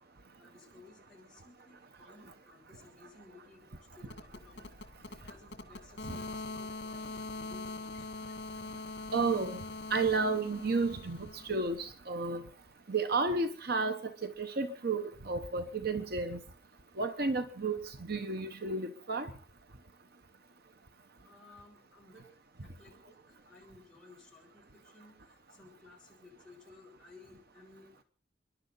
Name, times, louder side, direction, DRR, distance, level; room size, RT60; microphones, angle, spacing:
voice 1, 0.4-8.1 21.2-22.3 22.6-27.9, left 3 dB, 5° left, -4 dB, 6.8 m, -58 dB
sound 1, 4.0-11.9, left 3 dB, 70° left, 2.0 m, -43 dB
voice 2, 9.1-9.6 9.9-12.4 12.9-16.4 17.0-19.3, right 3 dB, 60° right, 9 dB, 1.1 m, -32 dB
30.0 x 11.5 x 4.1 m, 0.41 s
head